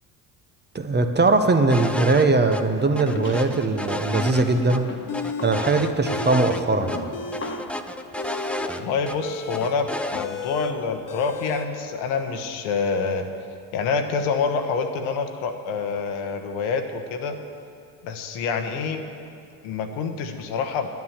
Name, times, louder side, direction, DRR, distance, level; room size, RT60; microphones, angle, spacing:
voice 1, 0.7-4.9 5.4-7.0, right 3 dB, 20° right, 6 dB, 0.9 m, -20 dB
sound 1, 1.7-2.2 2.5-2.6 3.0-4.8 5.1-6.6 6.9-7.0 7.3-9.2 9.5-10.3, left 1 dB, 5° left, 0.4 m, -31 dB
sound 2, 2.7-3.8 4.4-7.9, left 2 dB, 25° left, 1.5 m, -37 dB
sound 3, 4.1-4.7 5.1-5.6 5.9-6.7 7.0-11.7, left 3 dB, 40° left, 1.0 m, -34 dB
voice 2, 8.6-13.3 13.7-17.3 18.0-19.0 19.6-20.9, left 5 dB, 70° left, 6 dB, 1.3 m, -27 dB
9.6 x 9.4 x 7.3 m, 2.5 s
hypercardioid pair, 70°, 50 cm